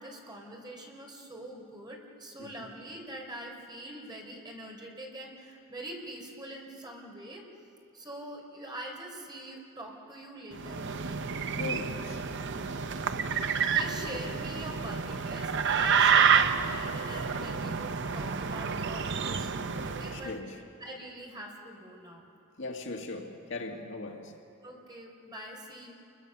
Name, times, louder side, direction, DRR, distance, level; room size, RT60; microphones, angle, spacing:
voice 1, 0.0-7.4 7.9-11.2 13.1-20.3 20.8-22.3 24.6-25.9, right 1 dB, 20° right, 3.9 m, -44 dB
sound 1, 10.5-20.3, right 6 dB, 60° right, 0.8 m, -29 dB
voice 2, 11.6-12.2 13.2-13.3 20.1-20.6 22.6-24.4, left 2 dB, 65° left, 2.0 m, -39 dB
29.0 x 22.5 x 6.8 m
head